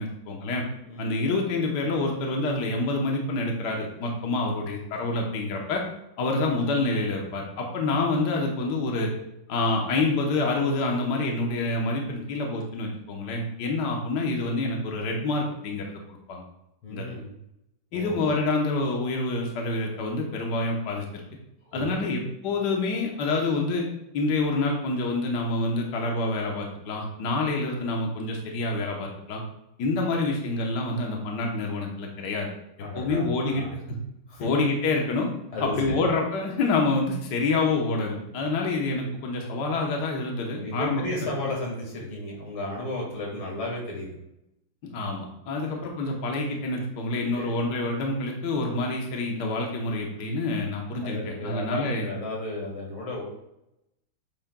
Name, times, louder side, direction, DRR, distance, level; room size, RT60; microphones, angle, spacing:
voice 1, 0.0-0.7 1.0-5.8 6.2-9.1 9.5-16.4 16.9-17.1 17.9-21.2 21.7-23.9 24.1-29.4 29.8-32.5 32.9-34.0 34.4-35.3 35.6-41.0 44.9-52.1, left 2 dB, 60° left, 0 dB, 1.5 m, -27 dB
voice 2, 0.8-1.2 16.8-17.3 17.9-18.3 21.6-22.1 32.8-33.8 34.3-34.5 35.5-36.0 40.5-44.1 45.6-45.8 47.4-47.5 51.0-53.2, left 2 dB, 90° left, -2 dB, 2.9 m, -34 dB
8.7 x 6.2 x 2.3 m, 0.85 s
omnidirectional pair, 2.2 m